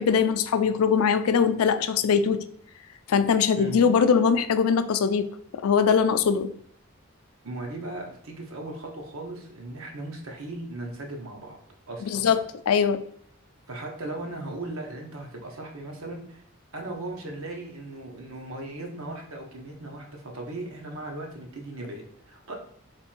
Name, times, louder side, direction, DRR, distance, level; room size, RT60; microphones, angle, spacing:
voice 1, 0.0-2.4 3.1-5.3 5.6-6.5 12.1-12.4 12.7-13.0, left 6 dB, 90° left, 11 dB, 0.4 m, -21 dB
voice 2, 7.4-11.6 11.9-12.4 13.7-16.4 16.7-22.6, right 2 dB, 75° right, 1 dB, 1.0 m, -37 dB
3.3 x 3.2 x 4.4 m, 0.63 s
head